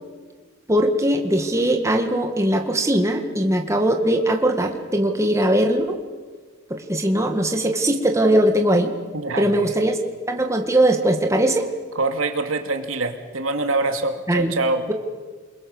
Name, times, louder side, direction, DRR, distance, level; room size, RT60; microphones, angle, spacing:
voice 1, 0.7-6.0 6.7-8.9 9.4-10.0 10.3-11.7 14.3-14.5, right 1 dB, 15° right, 3 dB, 1.8 m, -20 dB
voice 2, 9.1-9.7 11.9-14.9, right 2 dB, 90° right, 6 dB, 2.4 m, -24 dB
28.5 x 22.0 x 7.2 m, 1.5 s
head